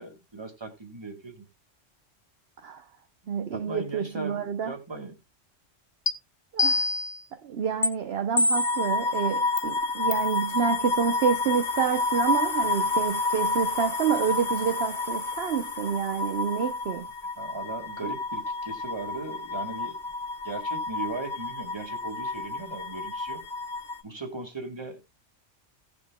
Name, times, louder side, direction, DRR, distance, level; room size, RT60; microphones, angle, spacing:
voice 1, 0.0-1.5 3.5-5.2 7.4-7.5 17.4-20.0 20.4-23.4 24.0-25.0, right 3 dB, 20° right, 1.9 m, -38 dB
voice 2, 3.3-4.7 6.5-6.9 7.4-17.1, right 7 dB, 60° right, 0.9 m, -28 dB
sound 1, 6.1-6.2 6.6-7.2 7.8-7.9 8.4-8.9 9.6-9.7 10.1-10.3, left 2 dB, 25° left, 0.6 m, -24 dB
sound 2, 8.6-24.0, left 3 dB, 40° left, 1.2 m, -30 dB
17.5 x 7.3 x 2.2 m
omnidirectional pair, 1.3 m